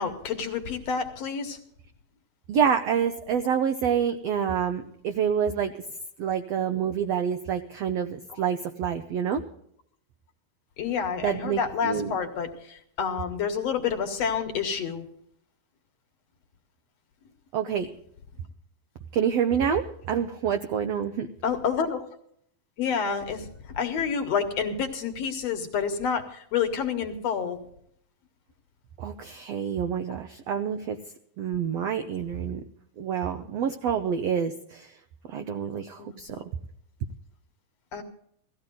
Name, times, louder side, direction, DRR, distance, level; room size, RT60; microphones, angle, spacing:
voice 1, 0.0-1.6 10.8-15.1 21.4-22.0 22.8-23.5 23.7-27.6 36.0-36.2 37.9-38.0, left 6 dB, 55° left, 5 dB, 2.2 m, -28 dB
voice 2, 2.5-5.7 6.2-9.4 11.2-12.1 17.5-17.9 19.1-21.3 29.0-31.0 31.4-32.6 33.0-34.9 35.3-36.4, right 7 dB, 80° right, 7 dB, 1.4 m, -27 dB
17.5 x 15.0 x 3.8 m, 0.68 s
omnidirectional pair, 4.0 m